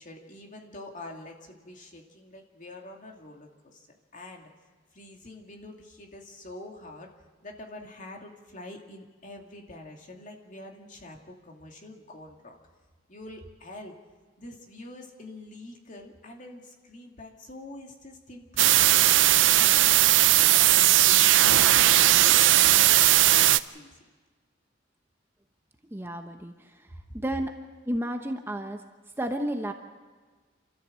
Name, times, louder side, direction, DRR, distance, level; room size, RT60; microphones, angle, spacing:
voice 1, 0.0-3.9 4.1-4.5 4.9-7.1 7.4-12.6 13.1-14.0 14.4-19.0 19.4-24.0, left 1 dB, 45° left, 1 dB, 2.5 m, -46 dB
sound 1, 18.6-23.6, right 14 dB, 85° right, 0.5 m, -18 dB
voice 2, 25.9-26.5 27.1-27.5 27.9-28.8 29.2-29.7, right 1 dB, 15° right, 5 dB, 1.0 m, -31 dB
28.5 x 13.5 x 7.6 m, 1.4 s
head